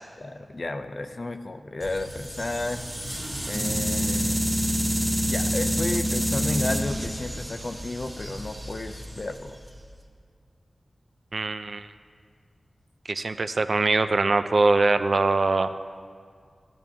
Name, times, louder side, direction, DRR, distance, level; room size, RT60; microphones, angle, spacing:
voice 1, 0.2-2.8 3.5-4.5 5.3-9.6, left 2 dB, 50° left, 8 dB, 0.5 m, -32 dB
sound 1, 1.8-9.9, equal, 15° right, 1.2 m, -28 dB
voice 2, 11.3-11.9 13.1-15.7, right 3 dB, 60° right, 10 dB, 0.4 m, -22 dB
14.0 x 10.5 x 2.8 m, 2.1 s
wide cardioid pair, 65°, 0 cm